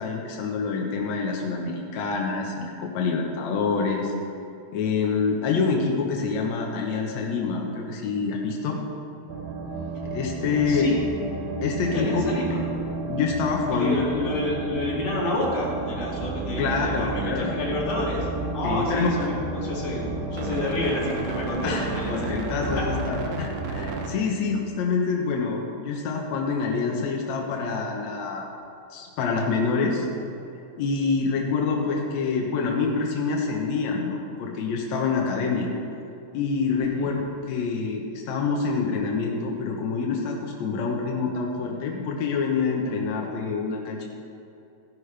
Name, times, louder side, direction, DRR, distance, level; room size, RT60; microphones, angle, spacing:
voice 1, 0.0-4.1 4.7-8.8 10.1-10.9 11.6-12.2 13.1-14.0 16.6-17.6 18.6-19.3 21.6-28.5 28.9-30.1 30.8-35.7 36.3-37.1 37.5-44.1, left 4 dB, 80° left, 0 dB, 1.6 m, -26 dB
sound 1, 9.3-24.1, right 3 dB, 80° right, 1.6 m, -32 dB
voice 2, 10.4-11.0 11.9-12.6 13.7-18.3 18.5-20.0 20.3-22.9 36.8-37.1, left 2 dB, 45° left, -5 dB, 3.0 m, -29 dB
15.5 x 11.0 x 3.3 m, 2.7 s
omnidirectional pair, 4.7 m